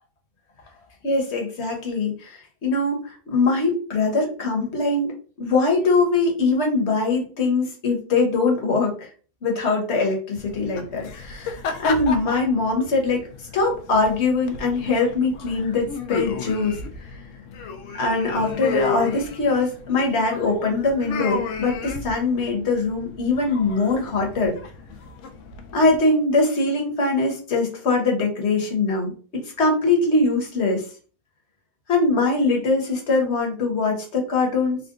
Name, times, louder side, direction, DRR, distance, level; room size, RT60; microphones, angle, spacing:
voice 1, 1.0-8.9 9.4-13.3 13.5-16.8 18.0-24.5 25.7-30.8 31.9-34.8, left 3 dB, 50° left, 0 dB, 1.2 m, -22 dB
sound 1, 10.4-26.0, left 5 dB, 65° left, 0.8 m, -33 dB
3.6 x 2.2 x 3.7 m, 0.39 s
omnidirectional pair, 1.7 m